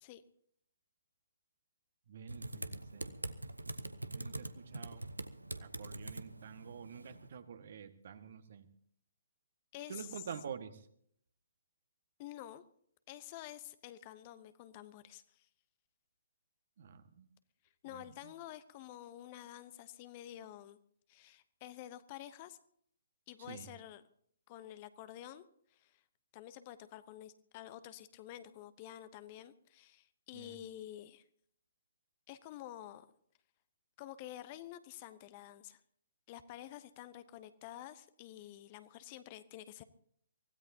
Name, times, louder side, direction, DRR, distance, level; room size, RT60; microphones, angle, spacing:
voice 1, 2.1-3.2 4.1-5.0 5.6-8.7 9.9-10.8 16.8-17.3 17.9-18.0 23.5-23.7 30.3-30.6, right 7 dB, 50° right, 9 dB, 1.7 m, -48 dB
Typing, 2.3-7.3, right 2 dB, 85° right, 1.0 m, -44 dB
voice 2, 9.7-10.3 12.2-12.6 13.1-15.5 17.8-20.8 21.1-22.6 23.3-24.0 24.5-25.4 25.7-26.0 26.3-31.2 32.3-33.1 34.0-35.8 36.3-39.8, left 13 dB, 30° left, 13 dB, 0.9 m, -49 dB
24.0 x 16.5 x 2.8 m, 0.66 s
figure-of-eight pair, 130°, 0 cm